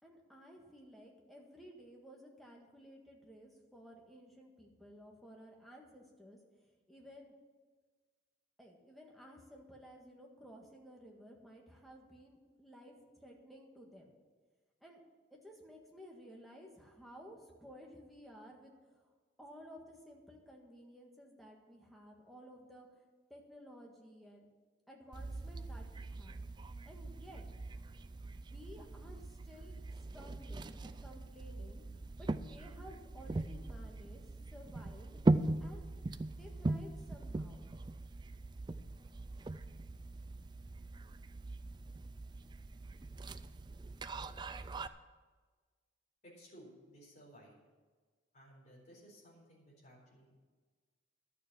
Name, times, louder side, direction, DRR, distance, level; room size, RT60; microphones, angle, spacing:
voice 1, 0.0-6.4 6.9-7.3 8.6-14.1 14.8-15.0 15.3-19.1 19.4-22.9 23.3-24.5 24.9-26.4 26.8-27.4 28.5-29.8 30.1-31.8 32.2-35.9 36.3-37.7, equal, ahead, -1 dB, 1.6 m, -55 dB
sound 1, 25.1-44.9, right 2 dB, 25° right, 0.3 m, -40 dB
voice 2, 46.2-47.6 48.3-50.3, equal, 40° left, -4 dB, 4.0 m, -58 dB
11.5 x 6.9 x 7.4 m, 1.4 s
head